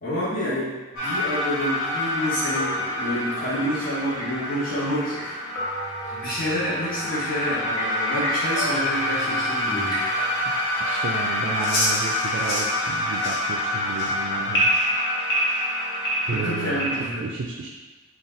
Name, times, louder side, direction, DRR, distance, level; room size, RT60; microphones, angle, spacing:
voice 1, 0.0-5.4 6.1-10.0 16.4-17.2, equal, 45° left, -11 dB, 1.1 m, -28 dB
sound 1, 1.0-17.0, left 1 dB, 65° left, 1.1 m, -26 dB
sound 2, 1.0-13.4, right 1 dB, 20° left, 1.0 m, -39 dB
voice 2, 10.8-14.7 16.3-16.9 17.2-17.7, right 4 dB, 60° right, 0 dB, 0.3 m, -32 dB
4.1 x 2.3 x 3.8 m, 1.2 s
head